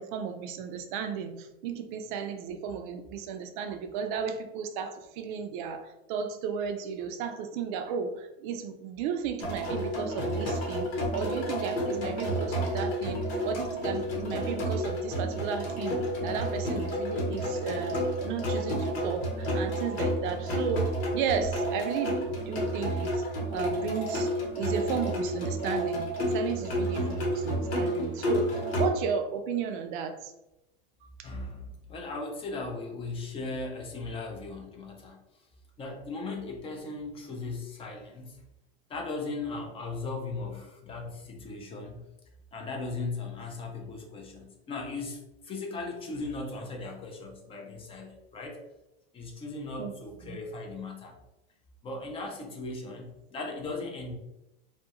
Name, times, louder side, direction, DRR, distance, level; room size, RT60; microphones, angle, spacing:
voice 1, 0.0-18.0 18.2-23.2 23.5-24.3 24.6-30.3 49.8-49.9 50.2-50.4, right 7 dB, 55° right, 7 dB, 0.4 m, -34 dB
sound 1, 9.4-28.9, equal, 85° left, 1.0 m, -30 dB
voice 2, 31.2-35.2 35.8-38.4 38.9-42.0 42.5-48.6 49.1-51.1 51.8-54.1, left 3 dB, 20° left, 1 dB, 0.4 m, -37 dB
2.3 x 2.2 x 2.8 m, 0.92 s
hypercardioid pair, 115°, 30 cm